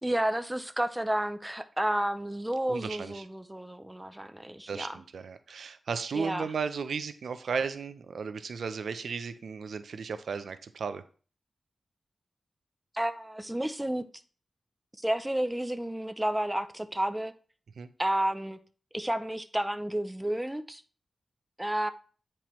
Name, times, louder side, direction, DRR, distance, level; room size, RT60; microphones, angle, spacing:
voice 1, 0.0-5.0 6.1-6.5 12.9-14.0 15.0-17.3 18.0-18.6 18.9-20.8 21.6-21.9, right 1 dB, 10° right, 0.4 m, -31 dB
voice 2, 2.7-3.2 4.7-11.0 17.8-17.9, right 5 dB, 90° right, 0.5 m, -35 dB
8.7 x 4.4 x 3.1 m
wide cardioid pair, 140°, 0 cm